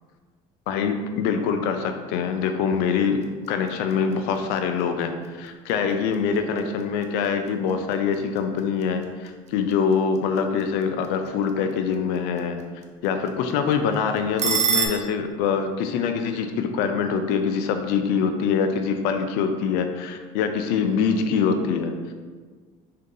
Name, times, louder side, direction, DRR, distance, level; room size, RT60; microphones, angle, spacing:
voice 1, 0.7-3.2 3.5-12.6 13.0-22.1, left 6 dB, 75° left, 7 dB, 0.4 m, -24 dB
sound 1, 3.1-14.9, right 6 dB, 45° right, 0.5 m, -34 dB
3.6 x 2.8 x 3.8 m, 1.5 s
supercardioid pair, 90°, 17 cm